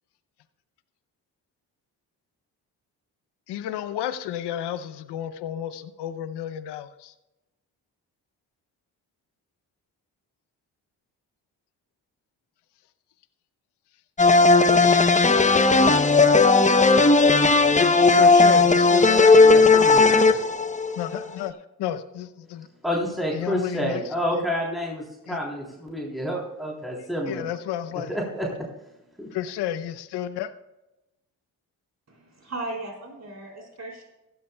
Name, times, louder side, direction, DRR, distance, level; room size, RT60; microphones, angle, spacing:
voice 1, 3.5-7.1 17.8-19.3 21.0-22.7 23.3-24.0 24.3-24.5 25.3-25.4 27.3-28.1 29.3-30.5, left 11 dB, 80° left, 13 dB, 0.8 m, -32 dB
sound 1, 14.2-21.2, left 3 dB, 20° left, 0.8 m, -16 dB
voice 2, 19.4-20.2 22.8-25.0 25.3-27.4 27.9-28.5 29.2-29.3, equal, ahead, -3 dB, 3.5 m, -29 dB
voice 3, 32.1-34.1, right 2 dB, 40° right, -1 dB, 4.4 m, -36 dB
16.0 x 12.5 x 2.3 m, 0.93 s
supercardioid pair, 50°, 40 cm